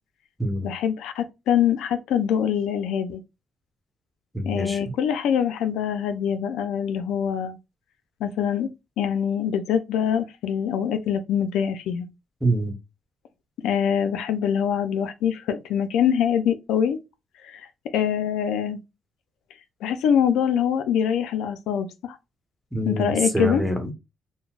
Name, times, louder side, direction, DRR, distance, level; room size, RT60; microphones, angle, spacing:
voice 1, 0.6-3.2 4.5-7.6 8.2-8.7 9.0-12.1 13.6-17.0 17.4-17.6 17.9-18.8 19.8-22.2 22.9-23.6, left 8 dB, 85° left, 0.4 m, -24 dB
voice 2, 4.3-4.8 12.4-12.7 22.7-23.9, right 1 dB, 5° right, 1.0 m, -25 dB
3.8 x 2.0 x 2.3 m
cardioid pair, 90°, 0 cm